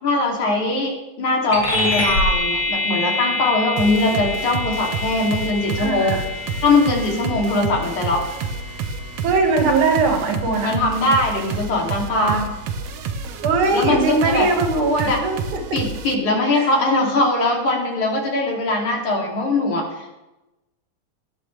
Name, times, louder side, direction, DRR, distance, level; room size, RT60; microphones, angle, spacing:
voice 1, 0.0-6.2 6.6-8.2 10.6-12.4 13.7-14.5 15.0-15.2 15.7-19.9, left 2 dB, 75° left, -1 dB, 4.2 m, -21 dB
sound 1, 1.5-11.4, left 2 dB, 35° left, 4.1 m, -27 dB
sound 2, 3.8-16.1, right 5 dB, 65° right, 1.7 m, -30 dB
voice 2, 5.8-6.2 9.2-10.8 12.1-12.5 13.4-15.8 16.5-16.7, right 3 dB, 80° right, 3 dB, 3.3 m, -20 dB
19.0 x 10.5 x 3.3 m, 0.97 s
omnidirectional pair, 3.4 m